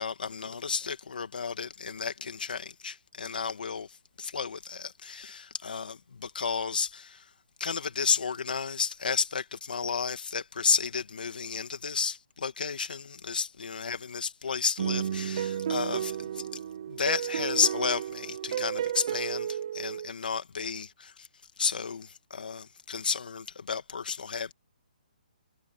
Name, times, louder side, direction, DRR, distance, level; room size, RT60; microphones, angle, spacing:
voice 1, 0.0-3.9 4.2-7.3 7.6-16.6 16.9-21.3 21.6-24.5, left 5 dB, 75° left, 1.9 m, -32 dB
sound 1, 14.8-20.1, right 9 dB, 35° right, 0.5 m, -32 dB
hypercardioid pair, 170°, 5 cm